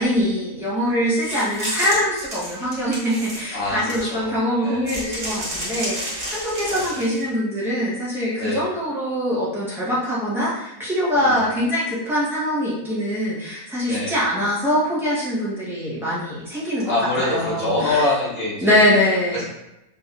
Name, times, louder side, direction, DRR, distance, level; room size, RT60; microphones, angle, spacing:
voice 1, 0.0-16.9 17.2-18.0 18.6-19.4, equal, ahead, -9 dB, 0.9 m, -23 dB
sound 1, 1.2-4.3 4.9-7.2, right 1 dB, 35° right, 0.9 m, -31 dB
voice 2, 3.5-4.3 4.6-4.9 6.7-7.0 8.4-8.6 11.1-11.5 13.9-14.1 16.8-18.8 19.3-19.4, left 2 dB, 45° left, -6 dB, 1.3 m, -25 dB
3.2 x 2.5 x 2.5 m, 0.93 s
omnidirectional pair, 1.6 m